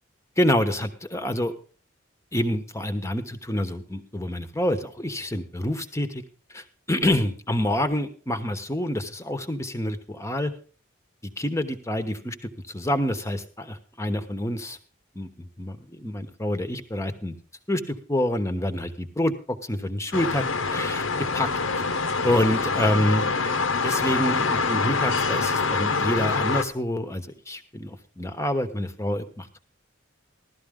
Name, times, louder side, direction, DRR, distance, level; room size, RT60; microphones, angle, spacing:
voice 1, 0.4-1.5 2.3-6.2 6.5-10.5 11.4-12.4 12.7-14.8 15.1-17.3 17.7-20.4 20.7-21.0 21.3-21.5 22.2-23.3 23.8-29.6, left 1 dB, 15° left, 9 dB, 1.1 m, -27 dB
sound 1, 20.1-26.6, left 4 dB, 75° left, 1.1 m, -25 dB
15.5 x 12.5 x 3.7 m, 0.39 s
head